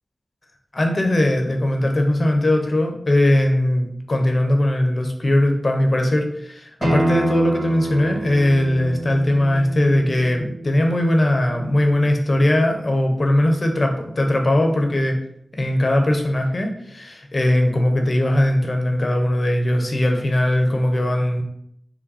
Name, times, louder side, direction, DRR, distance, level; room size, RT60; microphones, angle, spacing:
voice 1, 0.7-15.2 15.5-21.4, left 1 dB, 50° left, 3 dB, 1.0 m, -19 dB
Acoustic guitar, 6.8-12.0, right 1 dB, 60° right, 1.4 m, -27 dB
6.0 x 2.2 x 4.1 m, 0.73 s
cardioid pair, 40°, 0 cm